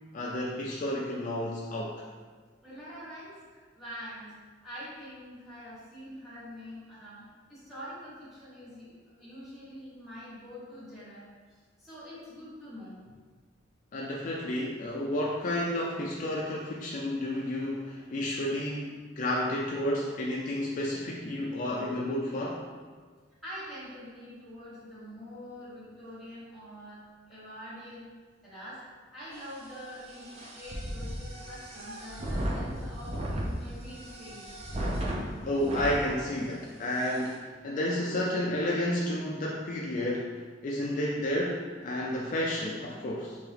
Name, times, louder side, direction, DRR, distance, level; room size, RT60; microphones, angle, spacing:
voice 1, 0.1-1.9 13.9-18.9 19.1-22.6 35.0-40.4 40.6-43.4, left 1 dB, 45° left, -3 dB, 0.4 m, -31 dB
voice 2, 2.6-11.3 11.8-13.0 23.4-27.0 27.3-28.0 28.4-34.6, equal, ahead, -12 dB, 1.3 m, -45 dB
sound 1, 29.3-36.0 36.6-36.7 36.9-37.3, equal, 35° right, 0.5 m, -36 dB
3.6 x 2.8 x 3.3 m, 1.5 s
head